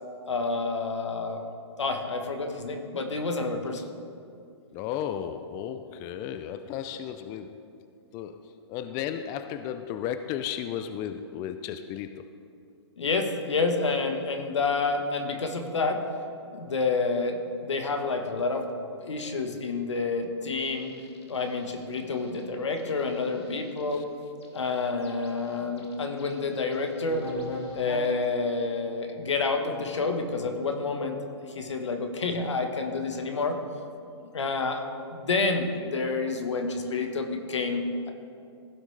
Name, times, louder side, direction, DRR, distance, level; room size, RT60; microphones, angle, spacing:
voice 1, 0.3-1.4 1.8-3.8 13.0-16.0 16.5-18.7 19.0-20.9 21.3-24.0 24.5-27.2 27.7-31.2 31.5-33.6 34.3-34.8 35.1-38.1, left 3 dB, 85° left, 5 dB, 1.3 m, -29 dB
voice 2, 4.7-7.8 8.1-12.3 23.9-24.0, left 9 dB, 25° left, 9 dB, 0.3 m, -34 dB
sound 1, 20.6-22.4 22.8-23.9 24.4-28.3, left 2 dB, 65° left, 1.6 m, -42 dB
15.5 x 6.2 x 3.3 m, 2.5 s
hypercardioid pair, 135°, 15 cm